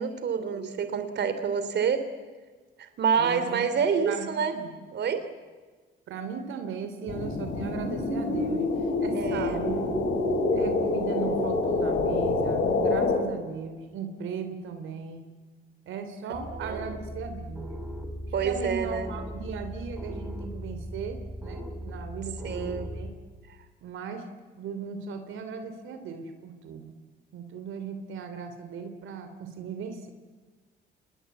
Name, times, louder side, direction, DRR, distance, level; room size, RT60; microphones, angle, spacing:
voice 1, 0.0-2.1 2.8-4.5 4.9-5.2 9.1-9.6 16.6-16.8 18.3-19.1 22.4-22.9, right 6 dB, 60° right, 10 dB, 3.2 m, -27 dB
voice 2, 3.2-3.6 4.1-4.2 4.5-4.8 6.1-8.7 9.0-9.8 10.5-15.2 15.9-17.7 18.2-23.1 23.8-24.3 24.6-26.9 27.3-30.1, right 6 dB, 80° right, 8 dB, 3.0 m, -37 dB
sound 1, 7.1-13.2, left 3 dB, 70° left, 6.4 m, -26 dB
sound 2, 16.3-23.1, equal, 5° right, 4.8 m, -38 dB
28.0 x 20.5 x 9.4 m, 1.4 s
cardioid pair, 90°, 20 cm